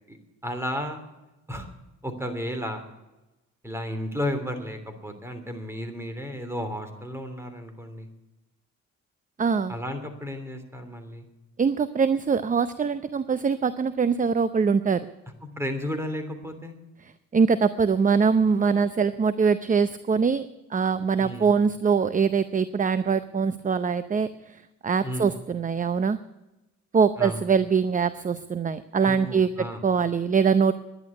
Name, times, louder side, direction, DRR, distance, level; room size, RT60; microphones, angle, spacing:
voice 1, 0.4-1.0 1.5-1.7 2.0-2.8 3.6-8.1 9.7-11.2 15.6-16.7 21.2-21.5 25.0-25.3 27.2-27.4 29.0-29.8, equal, 10° right, 7 dB, 3.2 m, -33 dB
voice 2, 9.4-9.7 11.6-15.0 17.3-26.2 26.9-30.7, right 5 dB, 25° right, 13 dB, 0.6 m, -23 dB
11.0 x 10.5 x 9.4 m, 1.0 s
cardioid pair, 90°, 30 cm